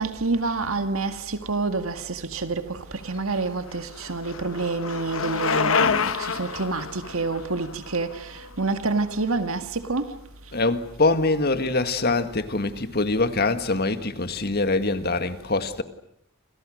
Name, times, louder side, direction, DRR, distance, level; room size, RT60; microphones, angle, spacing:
voice 1, 0.0-10.2, right 3 dB, 80° right, 1.9 m, -28 dB
Bicycle, 3.2-9.1, left 5 dB, 75° left, 1.2 m, -28 dB
voice 2, 10.5-15.8, left 3 dB, 50° left, 1.9 m, -24 dB
29.0 x 28.0 x 6.5 m
head